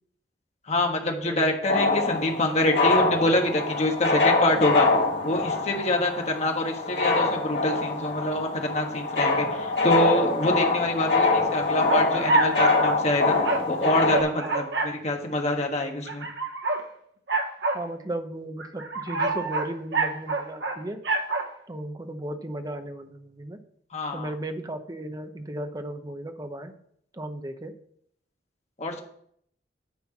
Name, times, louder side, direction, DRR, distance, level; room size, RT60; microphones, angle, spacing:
voice 1, 0.7-4.9 5.2-13.4 13.7-16.3 23.9-24.3 28.8-29.0, left 1 dB, 40° left, 2 dB, 1.5 m, -26 dB
sound 1, 1.6-14.2, left 3 dB, 70° left, 2.1 m, -24 dB
sound 2, 11.9-12.9 13.4-13.6 14.1-14.9 16.1-16.8 17.3-17.8 18.6-20.8 21.0-21.5, right 2 dB, 85° right, 1.1 m, -26 dB
voice 2, 17.7-21.0 21.7-23.6 24.1-26.8 27.1-27.7, right 1 dB, 20° right, 7 dB, 0.8 m, -35 dB
9.4 x 4.5 x 7.1 m, 0.68 s
head